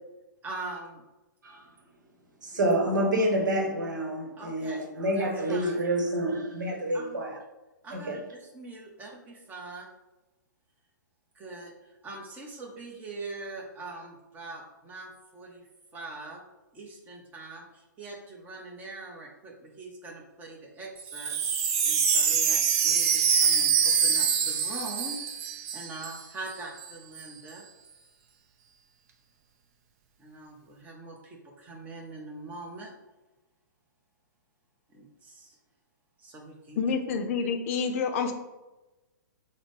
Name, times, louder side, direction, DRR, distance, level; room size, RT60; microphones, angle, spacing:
voice 1, 0.4-1.0 4.4-4.9 5.1-5.8 6.9-7.2 7.8-9.9 11.3-16.4 16.7-27.7 30.2-32.9 34.9-35.6 36.2-36.8, right 2 dB, 15° right, -1 dB, 0.8 m, -43 dB
voice 2, 2.4-7.4 7.9-8.2, right 1 dB, 70° right, 1 dB, 1.0 m, -28 dB
Wind chime, 21.0-26.2 26.5-26.6 26.8-27.2, right 7 dB, 45° right, 0.5 m, -25 dB
voice 3, 36.8-38.3, left 5 dB, 45° left, 5 dB, 0.5 m, -28 dB
6.3 x 2.1 x 3.2 m, 1.1 s
figure-of-eight pair, 120°, 11 cm